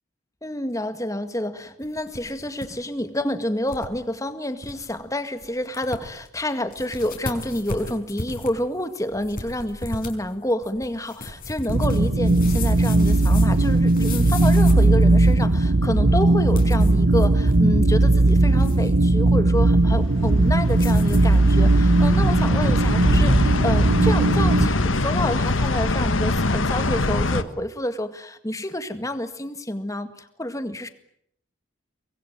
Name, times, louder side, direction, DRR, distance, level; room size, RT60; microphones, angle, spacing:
voice 1, 0.4-30.9, left 1 dB, 15° left, 9 dB, 1.9 m, -28 dB
sound 1, 1.8-2.7 3.0-3.1 3.7-3.9 4.3-4.4 4.6-4.9 5.4-5.5 5.7-6.3 6.7-15.5 16.4-17.7 18.0-19.0 20.7-21.4, left 2 dB, 45° left, 4.9 m, -36 dB
sound 2, 11.7-24.7, right 2 dB, 60° right, 1.0 m, -18 dB
sound 3, 19.8-27.4, left 2 dB, 75° left, 1.5 m, -24 dB
24.5 x 21.0 x 9.3 m, 0.70 s
head